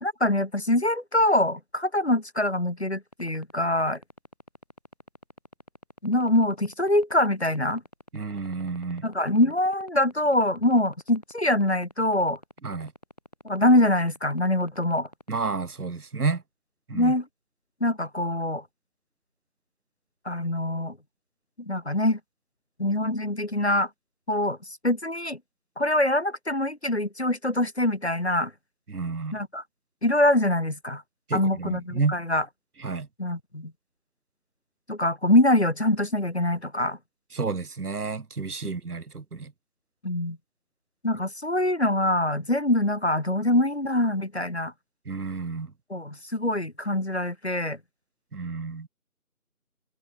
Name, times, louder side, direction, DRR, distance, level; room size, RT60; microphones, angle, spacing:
voice 1, 0.0-4.0 6.0-7.8 9.0-12.4 13.4-15.1 16.9-17.3 17.8-18.6 20.3-21.0 21.6-22.2 22.8-23.9 24.3-24.6 24.8-25.4 25.8-28.5 29.3-29.6 30.0-31.0 31.3-32.5 33.2-33.7 34.9-37.0 40.0-40.4 41.0-44.7 45.9-47.8, left 1 dB, 45° left, 0.7 m, -24 dB
sound 1, 3.1-15.4, left 1 dB, 25° left, 4.2 m, -46 dB
voice 2, 8.1-9.0 12.6-12.9 15.3-16.4 16.9-17.1 28.9-29.3 31.3-32.2 32.8-33.1 37.3-39.5 45.1-45.7 48.3-48.9, right 4 dB, 85° right, 1.1 m, -30 dB
figure-of-eight pair, 175°, 44 cm